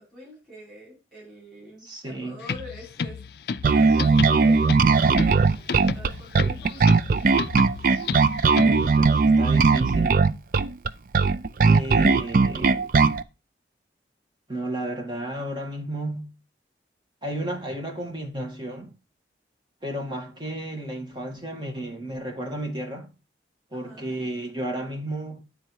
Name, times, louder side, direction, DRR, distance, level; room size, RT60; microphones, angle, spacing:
voice 1, 0.0-3.2 3.7-7.0 23.7-24.2, left 1 dB, 5° left, 5.2 m, -45 dB
voice 2, 1.8-2.4 8.6-10.2 11.6-12.9 14.5-16.3 17.2-18.9 19.8-23.1 23.7-25.4, right 1 dB, 25° right, 1.8 m, -33 dB
sound 1, 2.4-9.0, left 5 dB, 60° left, 0.4 m, -33 dB
Bass guitar, 3.6-13.2, right 4 dB, 50° right, 0.4 m, -19 dB
10.0 x 4.4 x 4.6 m
head